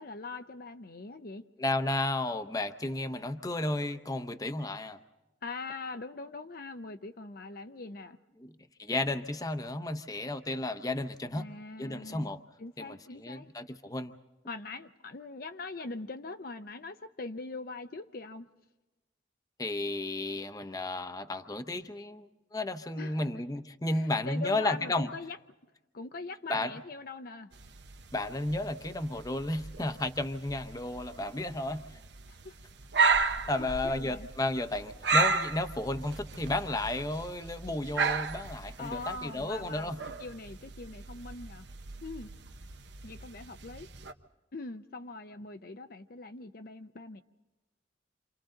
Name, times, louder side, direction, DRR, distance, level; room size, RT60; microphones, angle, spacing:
voice 1, 0.0-1.4 5.4-8.2 11.4-12.3 12.6-13.5 14.5-18.5 23.0-23.3 23.9-25.4 25.9-27.5 32.3-32.6 33.2-34.3 38.8-41.7 42.0-42.3 43.0-43.9 44.5-47.2, left 3 dB, 55° left, 8 dB, 0.6 m, -42 dB
voice 2, 1.6-5.0 8.4-8.5 8.8-11.5 11.8-12.4 12.8-14.1 19.6-25.1 26.5-26.7 28.1-32.0 33.5-40.0, left 2 dB, 20° left, 9 dB, 0.8 m, -33 dB
sound 1, 27.5-44.1, right 4 dB, 70° right, 1.0 m, -34 dB
28.5 x 27.0 x 3.9 m, 1.1 s
head